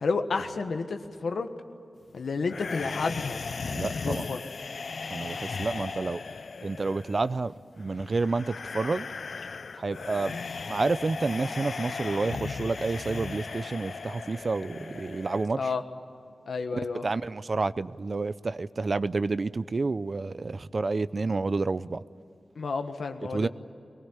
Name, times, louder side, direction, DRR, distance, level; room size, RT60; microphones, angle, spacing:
voice 1, 0.0-1.5 2.1-3.4 4.0-4.4 15.6-15.8 16.5-17.1 22.5-23.5, left 4 dB, 90° left, 7 dB, 1.6 m, -30 dB
sound 1, 2.5-15.5, left 4 dB, 65° left, 0.5 m, -37 dB
voice 2, 3.7-4.3 5.1-6.2 6.6-9.1 9.8-10.4 10.7-15.7 16.7-22.0 23.3-23.5, right 3 dB, 45° right, 15 dB, 0.5 m, -29 dB
23.0 x 19.5 x 9.9 m, 2.7 s
wide cardioid pair, 135°, 0 cm